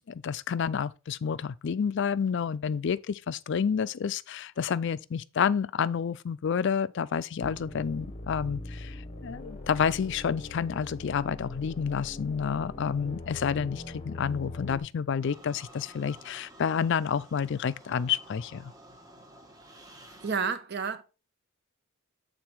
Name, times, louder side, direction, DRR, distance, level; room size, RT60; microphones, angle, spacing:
voice 1, 0.1-18.7, left 7 dB, 55° left, 0.4 m, -29 dB
sound 1, 7.4-14.8, left 2 dB, 25° left, 0.9 m, -41 dB
sound 2, 15.2-20.4, right 1 dB, 15° right, 1.0 m, -52 dB
voice 2, 20.2-21.0, right 5 dB, 50° right, 0.8 m, -30 dB
8.7 x 4.0 x 4.5 m
head